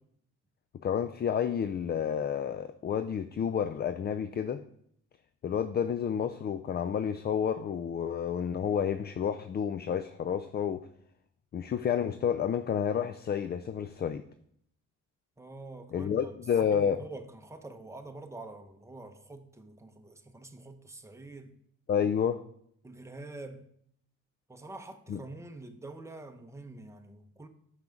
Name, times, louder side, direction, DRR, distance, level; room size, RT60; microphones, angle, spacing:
voice 1, 0.8-4.6 5.4-10.8 11.5-14.2 15.9-17.0 21.9-22.4 25.1-25.2, left 8 dB, 35° left, 0.4 m, -30 dB
voice 2, 15.4-16.4 16.7-21.5 22.8-23.7 24.5-27.5, right 2 dB, 10° right, 0.8 m, -46 dB
6.0 x 5.8 x 5.1 m
cardioid pair, 90°, 30 cm